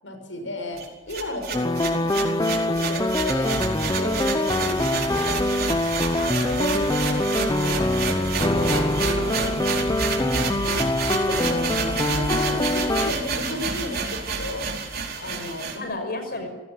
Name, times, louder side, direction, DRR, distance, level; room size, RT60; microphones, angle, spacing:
voice 1, 0.0-3.6 3.9-5.3 7.0-10.9 11.2-14.7 15.2-15.8, left 1 dB, 80° left, 5 dB, 6.8 m, -34 dB
sound 1, 0.8-15.8, right 4 dB, 50° right, 4.7 m, -29 dB
sound 2, 1.5-13.1, left 1 dB, 20° left, 0.8 m, -24 dB
voice 2, 6.2-7.3 11.4-11.6 12.4-12.7 15.7-16.5, left 2 dB, 50° left, 7 dB, 6.0 m, -33 dB
29.5 x 17.5 x 9.5 m, 1.1 s
head